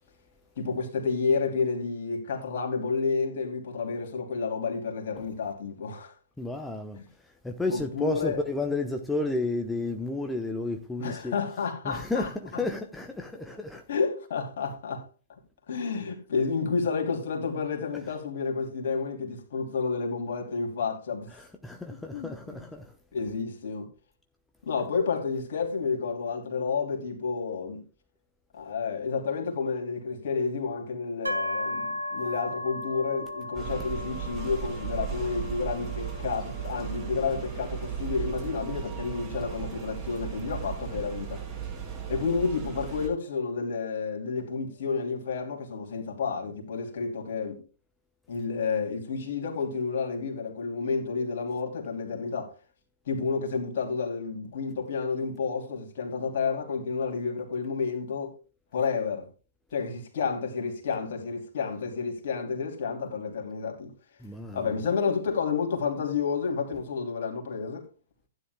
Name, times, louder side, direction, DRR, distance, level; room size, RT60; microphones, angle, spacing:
voice 1, 0.6-6.1 7.7-8.4 11.0-12.3 13.9-15.0 15.7-21.3 22.1-22.6 23.1-23.9 24.6-27.8 28.5-41.4 42.1-47.6 48.3-52.5 53.1-58.4 58.7-59.3 59.7-63.9 64.5-67.8, left 5 dB, 55° left, 2.9 m, -30 dB
voice 2, 6.4-11.3 11.8-13.8 21.3-23.0 64.2-64.8, left 2 dB, 5° left, 0.9 m, -32 dB
sound 1, 31.2-44.9, left 1 dB, 85° right, 1.6 m, -39 dB
sound 2, 33.5-43.1, right 8 dB, 20° right, 4.8 m, -36 dB
15.5 x 9.9 x 2.2 m
figure-of-eight pair, 115°, 0 cm